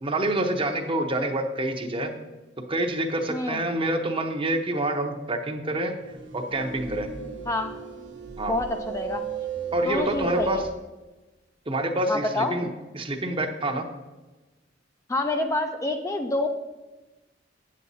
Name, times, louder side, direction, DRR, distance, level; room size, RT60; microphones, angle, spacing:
voice 1, 0.0-2.1 2.7-5.9 6.3-7.1 8.4-8.6 9.7-10.6 11.7-12.7 12.9-13.8, right 1 dB, 30° right, 5 dB, 0.8 m, -27 dB
voice 2, 3.3-3.6 7.5-7.7 8.5-9.2 9.8-10.6 12.1-12.6 15.1-16.5, left 2 dB, 15° left, 5 dB, 0.4 m, -27 dB
sound 1, 6.0-10.7, right 6 dB, 80° right, 1.0 m, -36 dB
9.1 x 7.4 x 4.1 m, 1.1 s
head